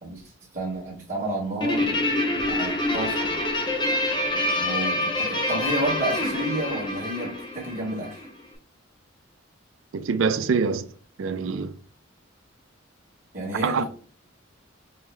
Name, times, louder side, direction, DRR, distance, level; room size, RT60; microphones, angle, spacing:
voice 1, 0.0-2.1 2.4-3.3 4.5-8.2 13.3-13.8, right 1 dB, 40° right, 1.4 m, -31 dB
Guitar, 1.6-8.3, left 1 dB, 20° left, 0.8 m, -26 dB
voice 2, 9.9-10.9 11.2-11.8 13.6-13.8, right 5 dB, 70° right, 0.4 m, -25 dB
5.4 x 2.0 x 3.2 m
head